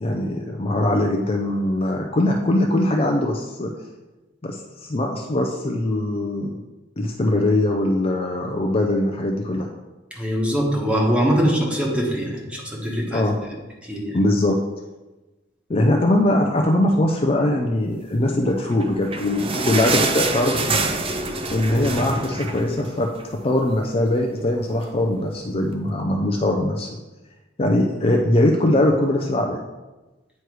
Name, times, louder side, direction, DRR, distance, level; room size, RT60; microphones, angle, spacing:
voice 1, 0.0-3.7 4.4-6.6 7.0-9.7 13.1-13.4 14.1-14.6 15.7-21.0 21.5-23.1 23.4-26.9 27.6-29.6, left 1 dB, 30° left, 1 dB, 0.5 m, -21 dB
voice 2, 10.1-13.2 13.8-14.2, equal, 5° right, -2 dB, 1.3 m, -22 dB
sound 1, 18.7-23.4 23.8-23.9 24.1-24.3 25.0-25.1, right 3 dB, 30° right, 0.5 m, -26 dB
9.2 x 3.2 x 4.6 m, 1.1 s
head